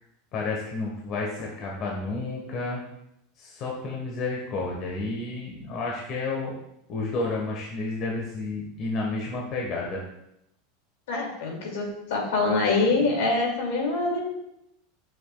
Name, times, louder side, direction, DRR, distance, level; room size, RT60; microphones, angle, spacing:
voice 1, 0.3-2.8 3.4-6.6 6.9-10.0, left 3 dB, 50° left, -2 dB, 1.5 m, -31 dB
voice 2, 11.1-14.2, left 3 dB, 75° left, -1 dB, 2.5 m, -25 dB
8.3 x 6.4 x 2.4 m, 0.82 s
hypercardioid pair, 105°, 0 cm